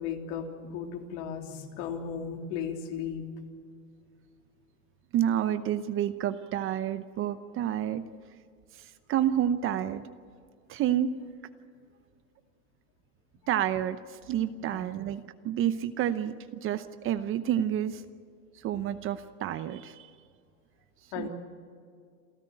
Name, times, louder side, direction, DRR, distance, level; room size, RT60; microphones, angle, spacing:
voice 1, 0.0-3.3 14.6-14.9 21.1-21.3, left 7 dB, 55° left, 4 dB, 3.3 m, -36 dB
voice 2, 5.1-8.0 8.7-10.0 10.7-11.1 13.5-18.0 18.5-20.1 21.2-21.3, right 10 dB, 30° right, 12 dB, 0.8 m, -29 dB
28.0 x 13.5 x 9.1 m, 2.3 s
hypercardioid pair, 125°, 43 cm